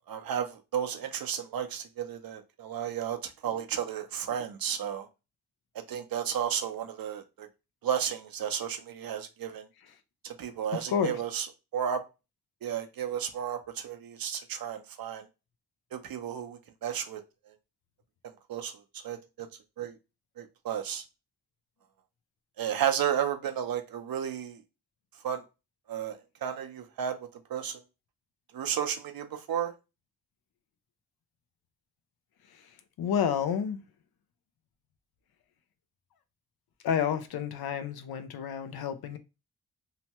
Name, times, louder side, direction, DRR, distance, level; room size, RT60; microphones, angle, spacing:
voice 1, 0.1-5.1 5.7-7.5 7.8-9.7 10.2-11.5 11.7-12.0 12.6-15.3 15.9-17.2 18.2-19.5 19.8-20.0 20.4-21.0 22.6-24.6 25.2-25.4 25.9-27.8 28.5-29.7, right 9 dB, 70° right, 0.6 m, -33 dB
voice 2, 10.7-11.2 32.5-33.8 36.8-39.2, left 8 dB, 80° left, 0.5 m, -30 dB
2.8 x 2.1 x 2.9 m
supercardioid pair, 45°, 36 cm